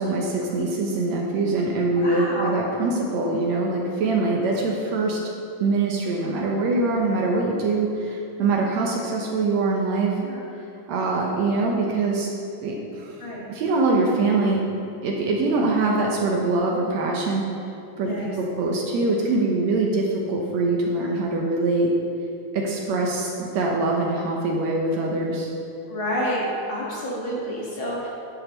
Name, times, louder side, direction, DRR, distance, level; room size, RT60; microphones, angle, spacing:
voice 1, 0.0-5.2 5.6-10.1 10.9-12.3 12.6-13.2 13.5-14.6 15.0-17.4 18.0-21.9 22.5-25.5, right 3 dB, 70° right, -1 dB, 1.9 m, -23 dB
voice 2, 2.0-2.7 10.2-10.4 13.2-13.5 18.0-18.3 25.9-28.1, equal, 50° left, -6 dB, 2.0 m, -29 dB
11.5 x 8.8 x 3.0 m, 2.6 s
omnidirectional pair, 3.6 m